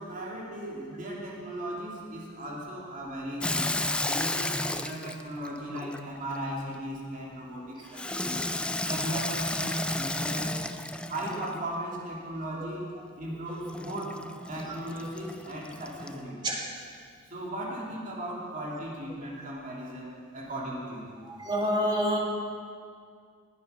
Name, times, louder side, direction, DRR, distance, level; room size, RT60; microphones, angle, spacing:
voice 1, 0.0-3.7 4.1-8.4 8.8-10.6 11.1-16.4 17.3-21.1, right 1 dB, 40° right, -3 dB, 2.9 m, -37 dB
Water tap faucet / Sink (filling or washing), 3.4-6.4 7.9-11.7 13.7-16.2, left 2 dB, 5° left, 0.4 m, -33 dB
voice 2, 21.3-22.2, equal, 20° right, -2 dB, 2.1 m, -27 dB
20.0 x 8.4 x 5.7 m, 2.2 s
head